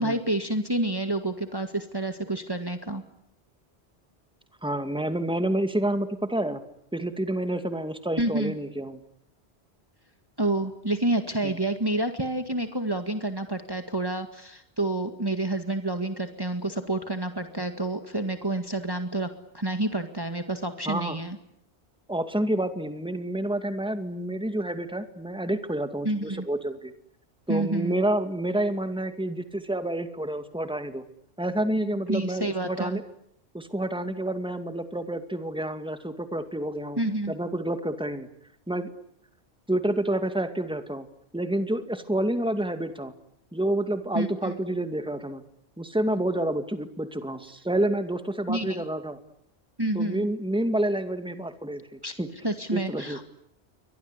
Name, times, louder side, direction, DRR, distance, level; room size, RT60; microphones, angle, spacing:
voice 1, 0.0-3.0 8.2-8.5 10.4-19.3 19.5-21.4 26.0-26.4 27.5-28.0 32.1-33.0 37.0-37.3 44.1-44.6 48.5-48.8 49.8-50.3 52.0-52.1 52.4-53.2, right 2 dB, 20° right, 7 dB, 2.0 m, -28 dB
voice 2, 4.6-6.6 6.9-9.0 11.4-11.6 20.9-21.2 22.1-26.9 27.5-31.0 31.4-33.0 33.5-37.0 37.3-38.3 38.7-38.9 39.7-41.1 41.3-43.1 43.5-45.4 45.8-49.2 49.9-52.3 52.7-53.2, right 1 dB, 5° right, 8 dB, 2.3 m, -29 dB
29.5 x 24.0 x 8.3 m, 0.74 s
omnidirectional pair, 1.1 m